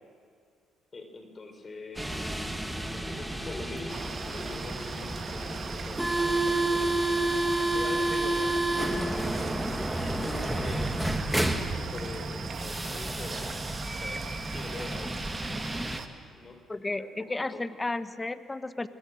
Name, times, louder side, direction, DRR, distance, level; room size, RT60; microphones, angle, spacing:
voice 1, 0.9-2.3 2.8-7.5 7.7-8.5 9.0-10.9 11.5-13.6 14.0-14.2 14.5-15.2 16.3-16.6 16.9-17.6, left 2 dB, 35° left, 5 dB, 4.2 m, -43 dB
sound 1, 2.0-16.0, right 1 dB, 5° right, 2.2 m, -30 dB
sound 2, 3.9-16.1, right 6 dB, 55° right, 1.6 m, -41 dB
voice 2, 16.7-18.9, left 2 dB, 20° left, 11 dB, 1.2 m, -33 dB
25.0 x 22.0 x 6.5 m, 2.3 s
supercardioid pair, 65°, 0 cm